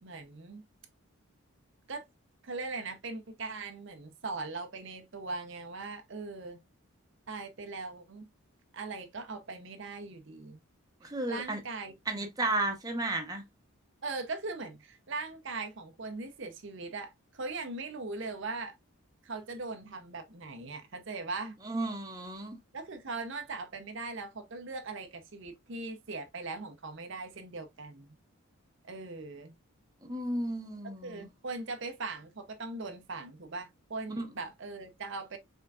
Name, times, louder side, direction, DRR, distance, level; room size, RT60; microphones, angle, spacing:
voice 1, 0.0-0.6 1.9-2.0 2.4-6.6 7.3-8.3 8.7-10.6 11.0-12.3 14.0-18.7 19.2-21.6 22.7-28.1 28.9-29.5 31.0-35.4, right 3 dB, 55° right, 0.7 m, -40 dB
voice 2, 11.0-11.6 12.1-13.4 21.6-22.5 30.0-31.3 34.2-34.3, right 2 dB, 15° right, 0.9 m, -33 dB
5.7 x 3.7 x 2.3 m
head